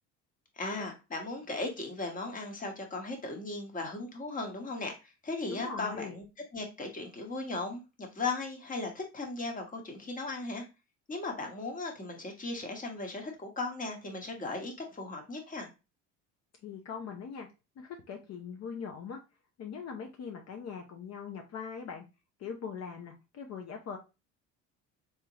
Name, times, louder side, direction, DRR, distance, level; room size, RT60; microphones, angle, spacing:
voice 1, 0.5-6.2 6.5-10.7 11.1-15.7, left 3 dB, 25° left, 3 dB, 1.2 m, -37 dB
voice 2, 5.5-6.2 16.6-17.5 17.8-19.2 19.6-22.0 22.4-24.0, left 6 dB, 50° left, 3 dB, 0.7 m, -41 dB
3.5 x 2.9 x 2.9 m, 0.27 s
supercardioid pair, 95°, 33 cm